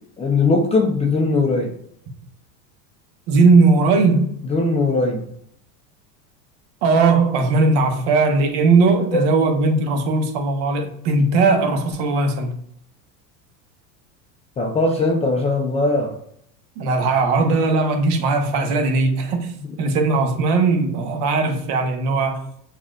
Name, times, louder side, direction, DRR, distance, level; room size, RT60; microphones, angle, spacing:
voice 1, 0.2-1.8 4.4-5.3 9.1-9.2 14.6-16.2, left 3 dB, 15° left, 0 dB, 0.3 m, -20 dB
voice 2, 3.3-4.3 6.8-12.6 16.8-22.5, right 3 dB, 55° right, 4 dB, 1.1 m, -18 dB
5.9 x 2.5 x 2.4 m, 0.69 s
hypercardioid pair, 90°, 49 cm